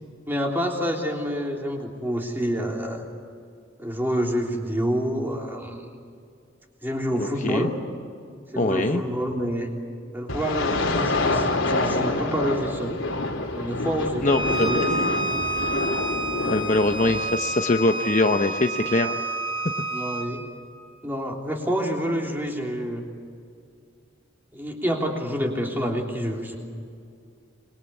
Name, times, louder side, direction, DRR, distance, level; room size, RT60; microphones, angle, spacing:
voice 1, 0.3-3.1 3.8-5.8 6.8-7.7 8.5-9.7 10.1-13.0 13.5-14.8 16.9-17.1 19.9-20.4 21.0-23.0 24.5-26.6, equal, 10° right, 0 dB, 3.4 m, -28 dB
voice 2, 7.1-7.7 8.6-9.0 14.2-15.0 16.4-19.1, left 2 dB, 40° left, 6 dB, 0.9 m, -23 dB
sound 1, 10.3-17.2, left 2 dB, 75° left, 2.9 m, -27 dB
Bowed string instrument, 14.3-20.3, right 2 dB, 25° right, 5.1 m, -29 dB
26.0 x 22.0 x 8.4 m, 2.3 s
head